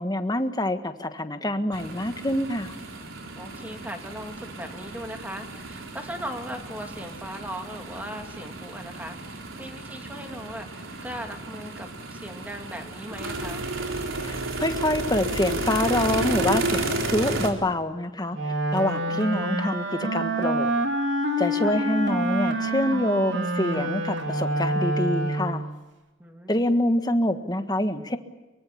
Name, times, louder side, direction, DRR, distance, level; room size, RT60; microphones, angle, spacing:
voice 1, 0.0-2.7 14.2-20.7 21.4-25.7 26.5-28.2, left 1 dB, 20° left, 8 dB, 1.5 m, -26 dB
sound 1, 1.7-17.5, right 2 dB, 80° right, 3.8 m, -32 dB
voice 2, 3.4-13.7 19.1-19.3 26.2-26.7, equal, 10° right, 4 dB, 2.7 m, -38 dB
Wind instrument woodwind instrument, 18.3-25.7, right 1 dB, 60° right, 3.3 m, -27 dB
23.5 x 23.5 x 8.7 m, 1.1 s
head